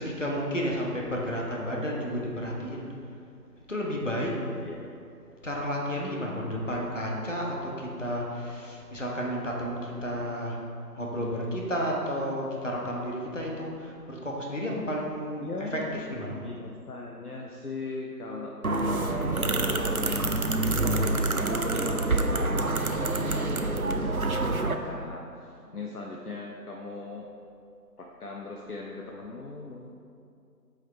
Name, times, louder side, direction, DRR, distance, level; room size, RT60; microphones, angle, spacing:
voice 1, 0.0-2.8 3.7-4.6 5.4-10.6 11.0-16.5, equal, 45° left, -2 dB, 1.2 m, -32 dB
voice 2, 4.4-4.9 15.4-15.9 16.3-27.3 28.0-29.9, left 3 dB, 65° left, -1 dB, 0.8 m, -39 dB
sound 1, 18.6-24.7, right 2 dB, 60° right, 0.5 m, -27 dB
7.8 x 4.9 x 4.3 m, 2.5 s
figure-of-eight pair, 175°, 50 cm